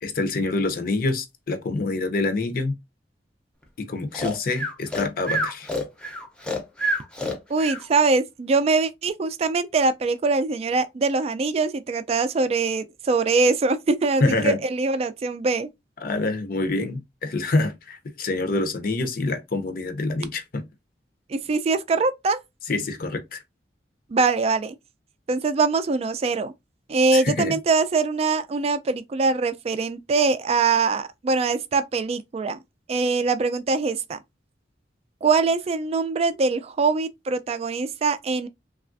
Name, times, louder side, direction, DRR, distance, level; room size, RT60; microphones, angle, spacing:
voice 1, 0.0-2.8 3.8-5.7 14.2-14.6 16.0-20.6 22.7-23.4 27.1-27.5, left 2 dB, 55° left, 0.6 m, -26 dB
Breathing, 4.1-7.8, equal, 5° left, 0.6 m, -28 dB
voice 2, 7.5-15.7 21.3-22.4 24.1-24.8 25.3-26.5 26.9-32.6 32.9-34.2 35.2-38.5, right 4 dB, 35° right, 0.3 m, -23 dB
3.2 x 2.3 x 2.5 m
head